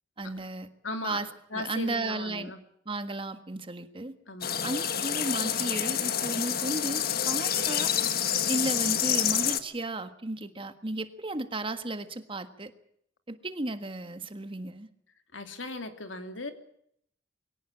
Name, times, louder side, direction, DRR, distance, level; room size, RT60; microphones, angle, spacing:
voice 1, 0.2-0.7 1.0-1.2 1.5-2.5 2.8-4.1 4.6-7.9 8.5-12.7 13.3-14.9, right 2 dB, 30° right, 10 dB, 1.6 m, -34 dB
voice 2, 0.8-2.6 4.3-4.7 15.3-16.5, left 2 dB, 90° left, 7 dB, 2.8 m, -38 dB
sound 1, 4.4-9.6, left 9 dB, 55° left, 1.5 m, -28 dB
23.0 x 17.5 x 8.6 m, 0.71 s
head